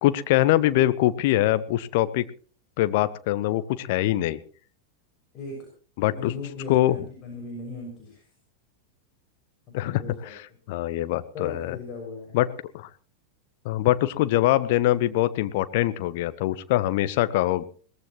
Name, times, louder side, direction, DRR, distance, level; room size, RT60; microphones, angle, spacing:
voice 1, 0.0-2.3 2.8-4.4 6.0-6.3 6.7-7.0 9.7-10.4 10.7-11.8 12.3-12.5 12.7-12.9 13.6-17.6, left 15 dB, 50° left, 14 dB, 1.0 m, -23 dB
voice 2, 5.3-5.7 6.2-8.2 9.7-10.3 11.3-12.4, left 3 dB, 30° left, 0 dB, 6.4 m, -38 dB
22.0 x 18.5 x 3.1 m, 0.41 s
figure-of-eight pair, 90°, 0 cm